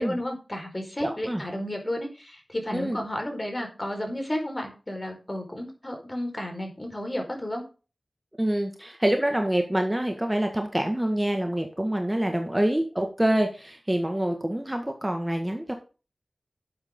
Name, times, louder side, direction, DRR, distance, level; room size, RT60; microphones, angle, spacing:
voice 1, 0.0-7.6, left 1 dB, 25° left, 3 dB, 4.6 m, -32 dB
voice 2, 1.0-1.4 2.7-3.0 8.4-15.7, right 1 dB, 15° right, 4 dB, 1.7 m, -26 dB
12.0 x 7.9 x 3.7 m, 0.33 s
wide cardioid pair, 60°, 0 cm